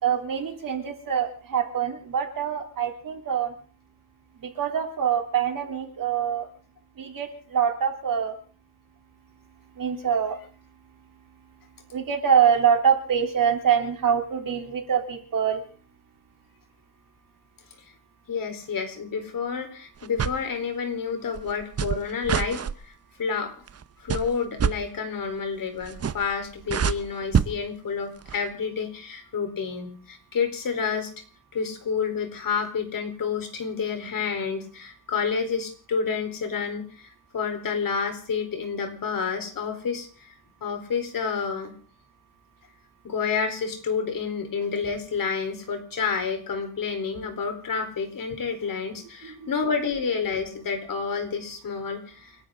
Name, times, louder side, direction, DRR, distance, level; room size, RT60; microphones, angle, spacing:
voice 1, 0.0-3.5 4.4-6.5 7.0-8.4 9.8-10.4 11.9-15.6 49.2-49.5, right 8 dB, 60° right, 4 dB, 3.6 m, -25 dB
voice 2, 18.3-22.9 23.2-23.5 24.0-31.1 31.5-40.3 40.6-41.7 43.0-52.4, left 5 dB, 60° left, 6 dB, 4.3 m, -29 dB
sound 1, 20.0-20.4 21.4-22.8 23.7-23.8 24.1-24.7 25.8-26.3 26.6-27.5 28.2-28.4, right 7 dB, 40° right, 0.9 m, -26 dB
29.5 x 11.5 x 3.9 m, 0.40 s
cardioid pair, 125°, 37 cm